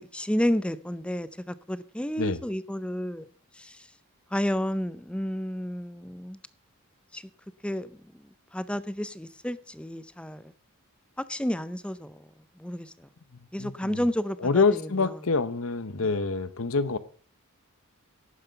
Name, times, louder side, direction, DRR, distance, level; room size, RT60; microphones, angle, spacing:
voice 1, 0.0-3.3 3.6-3.9 4.3-6.4 7.1-7.2 7.6-7.9 8.5-10.5 11.3-12.3 12.6-13.1 13.5-14.6, equal, 5° left, 0.5 m, -31 dB
voice 2, 13.3-14.1 14.4-17.0, left 4 dB, 70° left, 0.9 m, -26 dB
11.5 x 9.3 x 5.7 m
head